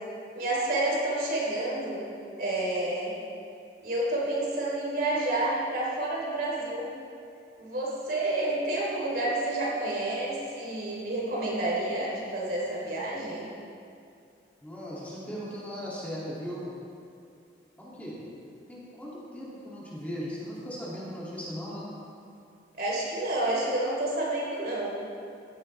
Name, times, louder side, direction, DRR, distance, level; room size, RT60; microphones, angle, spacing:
voice 1, 0.4-2.1 2.4-3.1 3.8-6.9 7.6-13.5 22.7-25.0, right 1 dB, 55° right, -5 dB, 3.5 m, -29 dB
voice 2, 14.6-16.7 17.8-18.2 18.7-21.9, equal, 10° left, -8 dB, 2.4 m, -38 dB
15.5 x 13.0 x 3.3 m, 2.5 s
head